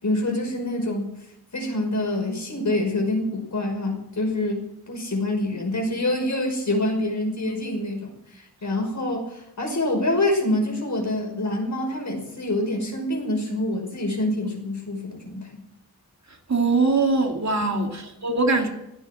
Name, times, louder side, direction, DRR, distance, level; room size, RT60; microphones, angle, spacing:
voice 1, 0.0-1.1 1.5-15.6 17.6-17.9, left 1 dB, 50° left, 2 dB, 5.6 m, -26 dB
voice 2, 16.5-18.7, right 3 dB, 50° right, 3 dB, 2.8 m, -22 dB
15.5 x 9.9 x 9.0 m, 0.84 s
wide cardioid pair, 90°, 37 cm